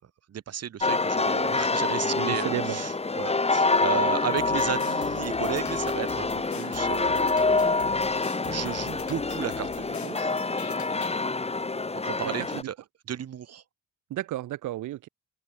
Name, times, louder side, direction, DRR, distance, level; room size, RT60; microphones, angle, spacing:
voice 1, 0.3-7.8 8.1-10.3 11.9-12.8 13.1-13.6, right 9 dB, 55° right, 2.1 m, -34 dB
sound 1, 0.8-12.6, left 3 dB, 20° left, 2.5 m, -26 dB
voice 2, 2.0-2.8 12.6-12.7 14.1-15.1, right 14 dB, 80° right, 2.0 m, -32 dB
sound 2, 4.4-11.2, left 11 dB, 70° left, 3.9 m, -45 dB
open air
cardioid pair, 90°, 30 cm